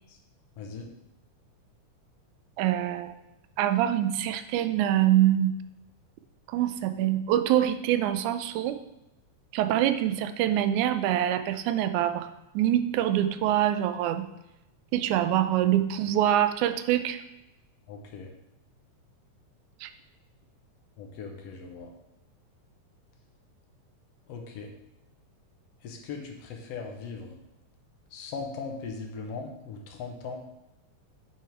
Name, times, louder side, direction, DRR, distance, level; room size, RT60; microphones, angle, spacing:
voice 1, 0.6-0.9 17.9-18.3 21.0-21.9 24.3-24.7 25.8-27.4 28.1-30.4, left 4 dB, 70° left, 2 dB, 1.7 m, -39 dB
voice 2, 2.6-3.2 3.6-5.6 6.5-8.8 9.5-12.3 12.5-14.3 14.9-17.2 19.8-19.9, right 12 dB, 80° right, 10 dB, 1.8 m, -25 dB
9.4 x 3.5 x 4.5 m, 0.90 s
omnidirectional pair, 3.6 m